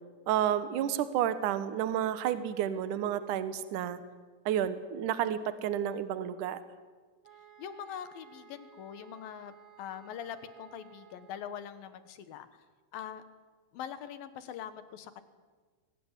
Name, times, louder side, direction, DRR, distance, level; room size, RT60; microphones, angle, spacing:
voice 1, 0.3-4.0 4.5-6.6, right 10 dB, 70° right, 12 dB, 2.5 m, -30 dB
sound 1, 7.2-11.9, right 9 dB, 40° right, 2.5 m, -56 dB
voice 2, 7.6-12.5 12.9-13.2 13.7-15.2, left 9 dB, 85° left, 11 dB, 3.2 m, -43 dB
23.5 x 19.5 x 9.9 m, 1.5 s
omnidirectional pair, 4.0 m